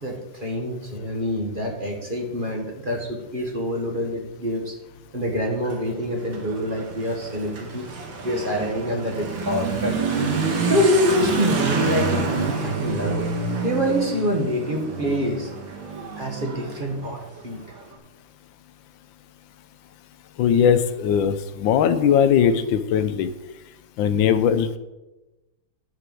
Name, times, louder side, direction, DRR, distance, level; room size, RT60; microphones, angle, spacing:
voice 1, 0.0-4.7 5.1-7.9 8.2-10.0 10.7-13.3 13.6-15.5 16.2-17.6, left 1 dB, 30° right, 1 dB, 1.6 m, -25 dB
Motorcycle / Accelerating revving vroom, 5.5-17.8, right 4 dB, 80° right, 2.2 m, -28 dB
voice 2, 20.4-23.3 24.0-24.8, left 8 dB, 85° left, 11 dB, 1.4 m, -19 dB
9.8 x 5.9 x 7.6 m, 1.0 s
omnidirectional pair, 2.0 m